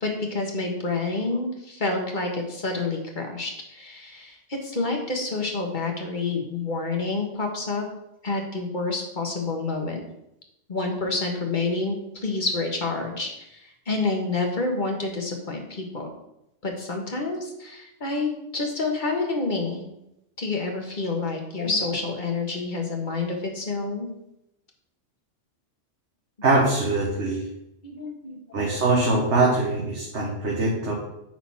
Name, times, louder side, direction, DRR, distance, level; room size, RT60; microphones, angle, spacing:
voice 1, 0.0-7.8 8.2-10.0 10.7-16.1 16.6-19.8 20.4-24.1 27.8-28.7, left 3 dB, 40° left, 2 dB, 1.6 m, -28 dB
voice 2, 26.4-27.4 28.5-30.9, right 2 dB, 65° right, -3 dB, 1.7 m, -22 dB
9.0 x 4.0 x 5.8 m, 0.84 s
omnidirectional pair, 1.3 m